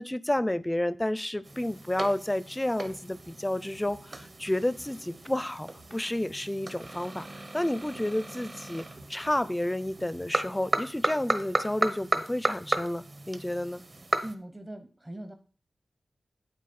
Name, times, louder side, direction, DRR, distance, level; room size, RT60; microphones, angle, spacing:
voice 1, 0.0-13.8, left 1 dB, 15° left, 17 dB, 0.5 m, -31 dB
sound 1, 1.4-14.4, right 2 dB, 45° right, 1.1 m, -35 dB
sound 2, 2.5-10.6, right 3 dB, 70° right, 1.5 m, -57 dB
voice 2, 14.2-15.3, right 1 dB, 20° right, 8 dB, 0.7 m, -41 dB
9.0 x 8.6 x 4.2 m, 0.37 s
wide cardioid pair, 95°, 0 cm